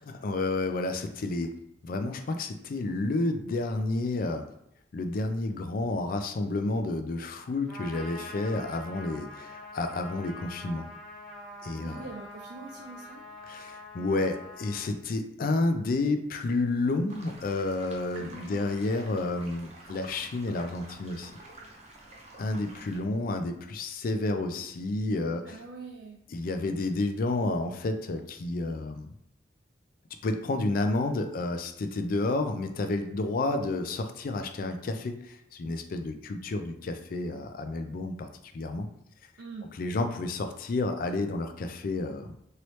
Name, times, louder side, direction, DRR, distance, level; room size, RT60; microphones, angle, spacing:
voice 1, 0.0-1.5 1.8-4.5 4.9-10.9 11.6-12.0 13.5-21.3 22.4-25.5 26.3-29.1 30.2-38.3 38.5-38.9 39.8-42.4, left 2 dB, 55° left, 7 dB, 0.4 m, -30 dB
Trumpet, 7.7-14.9, left 1 dB, ahead, 0.7 m, -45 dB
voice 2, 11.8-13.2 18.1-18.8 25.5-26.2 39.4-39.7, right 3 dB, 85° right, 1 dB, 0.4 m, -44 dB
sound 1, 17.1-23.0, right 2 dB, 40° right, 0.7 m, -50 dB
3.0 x 2.8 x 3.1 m, 0.77 s
head